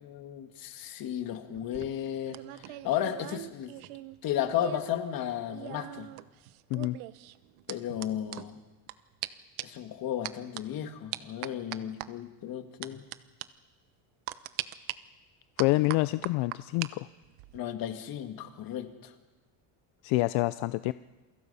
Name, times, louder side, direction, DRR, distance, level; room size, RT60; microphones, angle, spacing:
voice 1, 0.0-3.7 4.2-6.1 7.7-8.6 9.6-13.0 17.5-19.1, left 10 dB, 45° left, 7 dB, 2.0 m, -34 dB
sound 1, 1.5-5.0 5.2-8.9 9.2-9.3 9.6-9.8 10.2-10.6 11.1-12.1 12.8-13.2 13.4-13.5 14.3-14.9 15.6-16.9 17.2-17.6, right 18 dB, 85° right, 1.0 m, -40 dB
voice 2, 15.6-17.1 20.0-20.9, left 20 dB, 80° left, 14 dB, 0.6 m, -27 dB
28.0 x 24.0 x 5.6 m, 1.2 s
cardioid pair, 170°, 47 cm